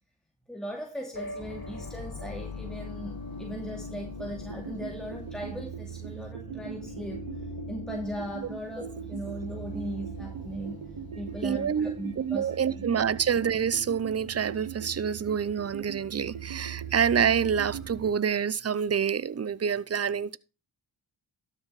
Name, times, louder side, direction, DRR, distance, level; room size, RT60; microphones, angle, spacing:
voice 1, 0.5-7.2 7.7-10.8 11.1-12.5 12.8-12.9, equal, ahead, 2.6 m, -38 dB
sound 1, 1.1-13.0, left 4 dB, 45° left, 1.9 m, -42 dB
sound 2, 4.2-18.1, right 8 dB, 75° right, 1.2 m, -40 dB
voice 2, 11.4-20.4, right 7 dB, 30° right, 0.6 m, -27 dB
12.5 x 6.8 x 4.1 m
cardioid pair, 45°, 50 cm